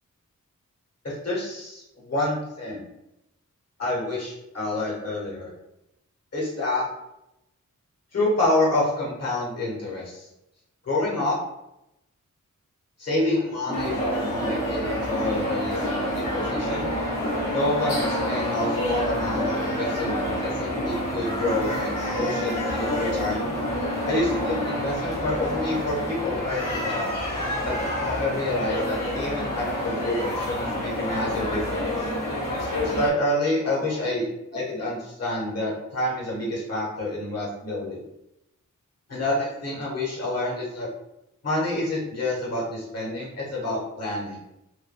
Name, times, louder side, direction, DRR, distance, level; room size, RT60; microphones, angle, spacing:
voice 1, 1.0-2.9 3.8-5.5 6.3-6.9 8.1-10.3 10.8-11.4 13.0-16.9 17.5-23.5 24.0-27.1 27.6-32.1 32.5-34.3 34.5-38.0 39.1-40.9 41.4-44.4, left 1 dB, 50° left, -5 dB, 1.3 m, -28 dB
sound 1, 13.7-33.1, left 1 dB, 85° left, 0.9 m, -29 dB
sound 2, 13.7-25.0, right 2 dB, 10° right, 0.9 m, -33 dB
3.3 x 2.1 x 2.2 m, 0.86 s
wide cardioid pair, 70°, 31 cm